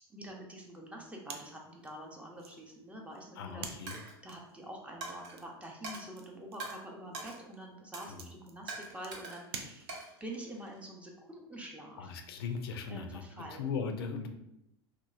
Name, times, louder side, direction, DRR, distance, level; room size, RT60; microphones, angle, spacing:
voice 1, 0.1-3.7 4.2-12.1 12.9-13.7, right 1 dB, 10° right, 0 dB, 0.6 m, -46 dB
sound 1, 1.2-10.3, right 5 dB, 75° right, 0.4 m, -50 dB
voice 2, 3.4-4.0 8.1-8.3 12.0-14.3, left 5 dB, 70° left, 5 dB, 0.4 m, -38 dB
Coin (dropping), 3.9-4.2 5.0-5.4 5.8-6.0 6.6-6.8 7.1-7.4 7.9-8.2 8.7-9.4 9.9-10.8, right 3 dB, 50° right, 0.8 m, -43 dB
2.9 x 2.1 x 2.4 m, 0.82 s
hypercardioid pair, 85°, 13 cm